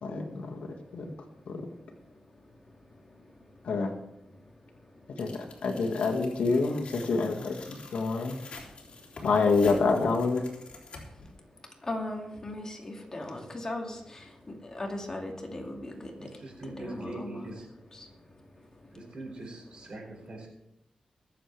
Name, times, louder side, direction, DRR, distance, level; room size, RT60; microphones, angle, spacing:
voice 1, 0.0-0.7 0.9-1.1 1.5-1.7 3.6-3.9 5.2-8.3 9.2-10.4, left 4 dB, 80° left, 2 dB, 1.9 m, -27 dB
Tearing, 5.2-11.3, left 3 dB, 60° left, 3.3 m, -48 dB
voice 2, 11.8-16.1 16.6-17.5 17.9-18.1, left 1 dB, 30° left, 1 dB, 2.4 m, -38 dB
voice 3, 16.2-17.7 18.9-20.5, right 2 dB, 50° right, 1 dB, 4.4 m, -42 dB
23.0 x 7.7 x 3.4 m, 0.85 s
wide cardioid pair, 95°, 2 cm